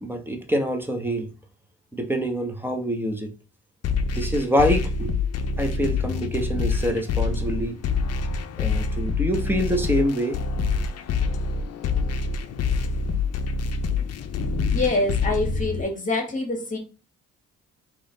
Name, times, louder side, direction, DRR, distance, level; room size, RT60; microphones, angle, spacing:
voice 1, 0.0-1.3 1.9-3.3 4.1-5.1 5.6-7.8 8.6-10.6, equal, 5° right, 1.0 m, -25 dB
sound 1, 3.8-15.8, left 4 dB, 55° left, 0.7 m, -26 dB
voice 2, 14.7-16.8, left 2 dB, 25° left, 1.8 m, -25 dB
3.8 x 3.1 x 4.0 m
cardioid pair, 90°, 30 cm